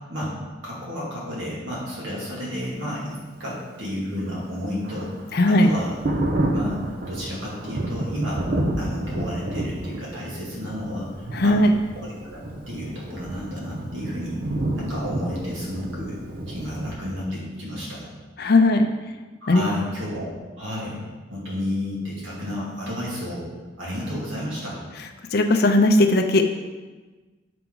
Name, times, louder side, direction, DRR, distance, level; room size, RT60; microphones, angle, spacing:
voice 1, 0.6-5.1 5.4-6.0 6.5-6.8 7.1-8.4 8.8-11.6 12.0-14.4 14.7-16.2 16.5-18.1 19.4-21.0 21.3-23.5 23.8-24.8, equal, 80° right, -5 dB, 2.2 m, -31 dB
Thunder, 4.1-17.0, right 1 dB, 45° right, 0.6 m, -30 dB
voice 2, 5.3-5.7 11.3-11.8 18.4-18.9 19.5-19.6 25.3-26.5, left 2 dB, 55° left, 5 dB, 0.5 m, -17 dB
5.9 x 5.7 x 3.8 m, 1.3 s
head